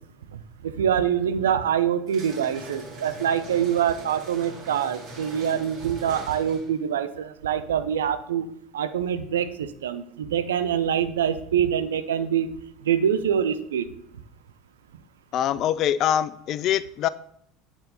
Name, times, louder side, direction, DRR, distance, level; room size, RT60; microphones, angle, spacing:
voice 1, 0.6-8.4 8.7-12.5 12.8-13.9, right 9 dB, 75° right, 11 dB, 0.4 m, -25 dB
sound 1, 2.1-6.8, right 2 dB, 45° right, 2.6 m, -42 dB
voice 2, 15.3-17.1, left 10 dB, 45° left, 17 dB, 0.3 m, -24 dB
8.5 x 4.0 x 3.9 m, 0.69 s
figure-of-eight pair, 70°, 0 cm